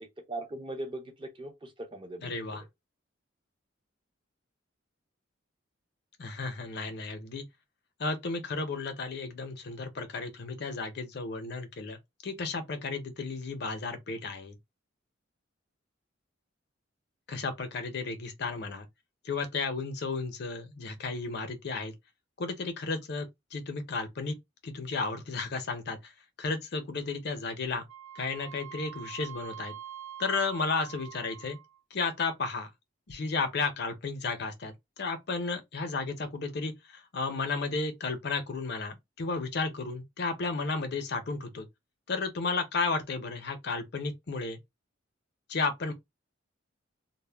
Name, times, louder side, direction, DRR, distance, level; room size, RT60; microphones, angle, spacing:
voice 1, 0.0-2.6, right 1 dB, 25° right, 0.5 m, -40 dB
voice 2, 2.2-2.6 6.2-7.5 8.0-14.5 17.3-18.9 19.2-21.9 22.4-24.3 24.6-26.1 26.4-27.8 28.2-29.7 30.2-31.6 31.9-32.7 33.1-34.7 35.0-41.7 42.1-44.6 45.5-45.9, left 4 dB, 55° left, 0.5 m, -33 dB
Wind instrument woodwind instrument, 27.9-31.8, right 10 dB, 85° right, 0.7 m, -45 dB
2.1 x 2.0 x 3.2 m
head